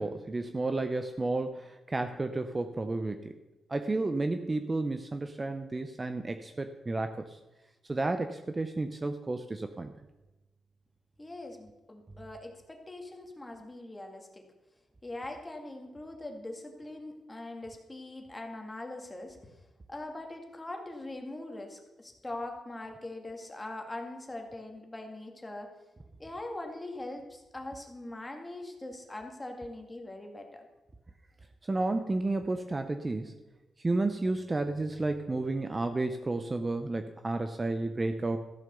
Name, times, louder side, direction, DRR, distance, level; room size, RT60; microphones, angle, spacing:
voice 1, 0.0-3.3 3.7-7.4 7.9-9.9 31.6-33.4 33.8-38.4, right 2 dB, 20° right, 8 dB, 0.6 m, -32 dB
voice 2, 11.2-14.4 15.0-19.5 19.9-25.7 26.2-30.7, left 2 dB, 15° left, 3 dB, 2.1 m, -42 dB
14.0 x 7.4 x 6.9 m, 1.0 s
cardioid pair, 115°, 0 cm